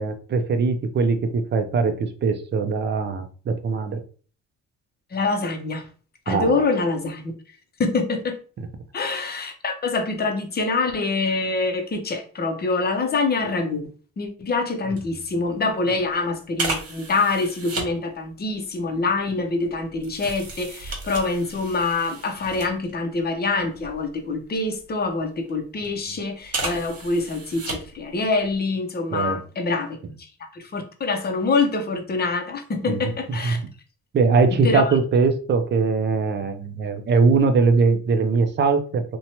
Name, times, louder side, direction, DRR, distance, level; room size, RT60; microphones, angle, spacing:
voice 1, 0.0-4.0 6.3-6.6 8.6-8.7 29.1-29.4 32.9-33.7 34.1-39.0, right 4 dB, 35° right, 0.5 m, -21 dB
voice 2, 5.1-5.8 6.3-7.3 7.8-8.4 8.9-30.0 30.5-33.6 34.5-34.9, left 3 dB, 35° left, 0.6 m, -25 dB
sound 1, 15.0-15.1 15.4-15.6 16.5-17.9 18.7-23.2 23.6-24.9 25.5-25.9 26.4-28.1 28.4-28.6, right 3 dB, 55° right, 1.2 m, -34 dB
2.7 x 2.2 x 2.9 m
cardioid pair, 90°, 30 cm